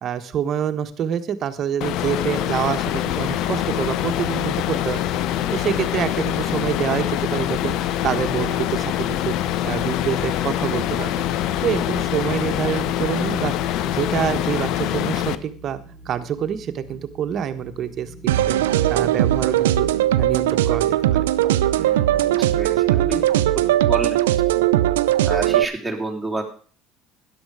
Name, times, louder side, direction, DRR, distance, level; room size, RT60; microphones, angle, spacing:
voice 1, 0.0-5.2 5.5-9.3 9.6-11.1 11.6-15.8 16.0-18.6 18.9-19.9 20.2-21.3, right 9 dB, 50° right, 10 dB, 1.3 m, -26 dB
sound 1, 1.8-15.4, left 12 dB, 65° left, 0.8 m, -24 dB
sound 2, 13.3-23.0, right 1 dB, 35° left, 3.2 m, -45 dB
sound 3, 18.3-25.6, right 13 dB, 85° right, 0.6 m, -19 dB
voice 2, 21.8-23.2 23.9-24.2 25.3-26.4, right 2 dB, 5° right, 0 dB, 3.5 m, -29 dB
13.0 x 10.5 x 4.9 m, 0.42 s
hypercardioid pair, 75°, 0 cm